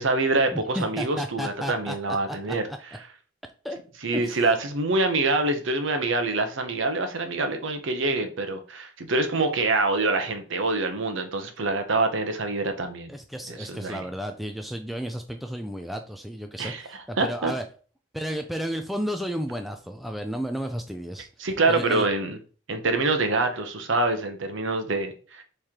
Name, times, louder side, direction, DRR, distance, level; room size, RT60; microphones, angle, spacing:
voice 1, 0.0-3.0 4.0-13.1 13.5-14.0 16.6-17.5 21.4-22.4 22.7-25.4, right 2 dB, 65° right, 7 dB, 0.8 m, -26 dB
voice 2, 0.5-2.4 2.7-2.8 3.6-3.8 4.1-4.4 13.1-17.6 18.1-21.3 21.7-22.1, equal, ahead, 5 dB, 0.3 m, -33 dB
3.6 x 3.2 x 4.4 m, 0.39 s
head